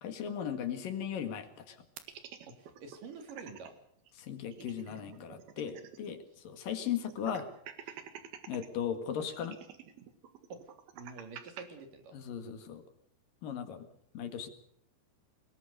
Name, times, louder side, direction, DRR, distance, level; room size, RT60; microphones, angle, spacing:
voice 1, 0.0-1.8 4.3-6.2 6.4-7.5 8.5-9.6 12.1-12.8 13.4-13.9 14.1-14.5, left 8 dB, 70° left, 8 dB, 3.4 m, -37 dB
sound 1, 2.0-3.7 4.1-4.2 4.4-6.2 6.5-6.6 7.1-8.7 9.3-11.6, right 9 dB, 80° right, 3.6 m, -48 dB
voice 2, 2.6-3.8 10.5-10.6 10.9-12.1, right 4 dB, 65° right, 7 dB, 4.0 m, -47 dB
23.0 x 21.0 x 6.6 m, 0.70 s
omnidirectional pair, 4.3 m